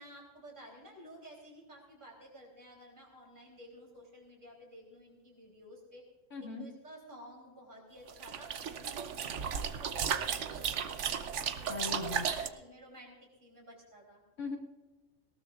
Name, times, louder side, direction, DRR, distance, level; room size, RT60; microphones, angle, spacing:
voice 1, 0.0-6.0 6.4-11.5 12.2-14.2, equal, 40° right, -1 dB, 3.9 m, -53 dB
voice 2, 6.3-6.7 11.7-12.5 14.4-14.6, left 3 dB, 70° left, -2 dB, 2.5 m, -39 dB
sound 1, 8.1-12.5, right 7 dB, 70° right, 1.1 m, -35 dB
19.5 x 18.0 x 2.5 m, 1.2 s
omnidirectional pair, 1.3 m